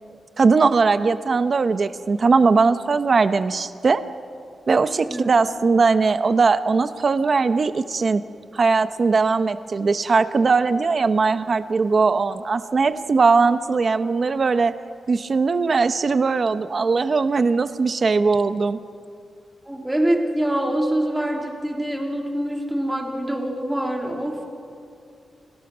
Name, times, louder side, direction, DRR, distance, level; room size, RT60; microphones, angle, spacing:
voice 1, 0.4-4.0 4.7-8.2 8.5-14.7 15.1-18.8, right 4 dB, 45° right, 11 dB, 0.9 m, -19 dB
voice 2, 19.6-24.4, right 1 dB, 10° right, 1 dB, 3.4 m, -25 dB
29.5 x 19.0 x 6.2 m, 2.4 s
wide cardioid pair, 110°, 0 cm